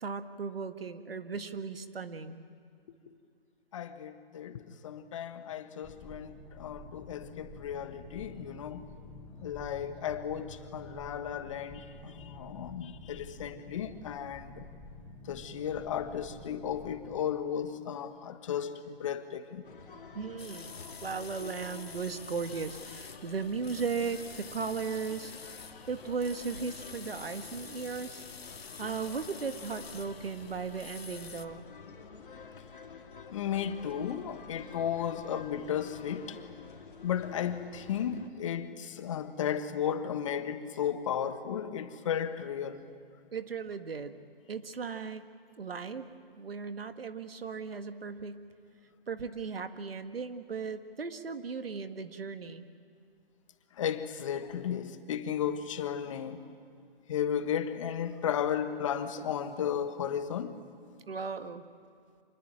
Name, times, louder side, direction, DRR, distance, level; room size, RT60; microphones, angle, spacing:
voice 1, 0.0-2.4 20.1-25.3 25.9-28.2 28.8-31.7 43.3-44.2 44.5-45.3 45.6-46.1 46.4-48.4 49.1-52.7 61.1-61.6, right 5 dB, 75° right, 10 dB, 1.8 m, -36 dB
voice 2, 3.7-8.8 9.4-14.7 15.3-19.6 33.3-36.4 37.0-42.8 53.8-56.5 57.1-60.6, left 9 dB, 30° left, 11 dB, 1.3 m, -34 dB
sound 1, 5.8-17.2, left 2 dB, 10° left, 1.3 m, -49 dB
sound 2, 19.6-38.3, left 5 dB, 60° left, 2.4 m, -49 dB
sound 3, 20.4-31.5, left 5 dB, 80° left, 1.5 m, -48 dB
26.5 x 21.5 x 9.0 m, 2.3 s
hypercardioid pair, 155°, 30 cm